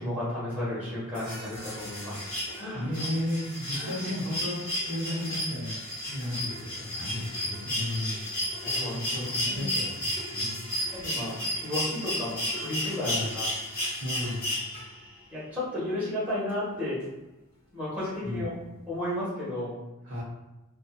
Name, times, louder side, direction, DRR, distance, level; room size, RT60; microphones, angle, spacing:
voice 1, 0.0-2.3 2.5-3.0 3.7-3.9 8.6-9.2 9.4-9.7 10.3-10.5 10.9-13.5 15.3-17.0 17.7-18.5 18.9-19.7, left 1 dB, 10° right, -10 dB, 1.1 m, -33 dB
sound 1, 1.1-15.1 16.5-16.6, left 1 dB, 40° left, 1.0 m, -33 dB
voice 2, 2.7-8.3 8.9-10.7 13.0-13.3 14.0-14.5 18.2-18.5 20.0-20.2, left 1 dB, 55° right, -7 dB, 0.8 m, -34 dB
2.5 x 2.4 x 2.3 m, 1.0 s
head